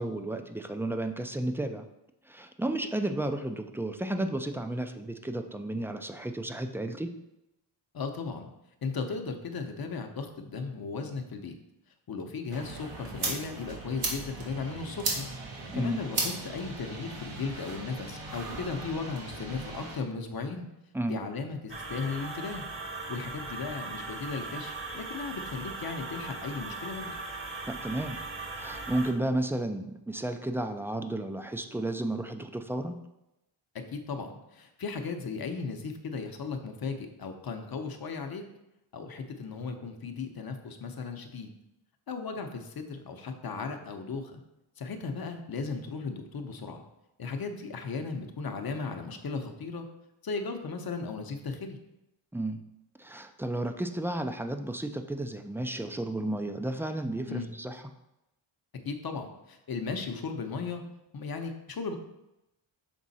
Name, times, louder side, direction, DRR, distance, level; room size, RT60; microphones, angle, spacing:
voice 1, 0.0-1.9 2.2-7.1 15.7-16.0 20.9-21.2 27.7-28.2 28.6-33.0 52.3-52.6 53.0-57.9, right 1 dB, 5° right, 6 dB, 0.4 m, -32 dB
voice 2, 7.9-8.5 8.8-11.5 12.1-15.3 15.7-20.6 21.0-22.6 23.1-27.2 33.9-38.4 38.9-41.5 42.1-44.4 44.8-46.8 47.2-49.9 50.2-51.8 57.3-57.5 58.8-60.8 61.1-62.0, left 4 dB, 45° left, 5 dB, 0.8 m, -36 dB
sound 1, 12.5-20.0, right 3 dB, 85° right, 1.5 m, -37 dB
sound 2, 21.7-29.1, right 3 dB, 25° right, 0.9 m, -39 dB
6.2 x 3.7 x 4.1 m, 0.90 s
cardioid pair, 80°, 49 cm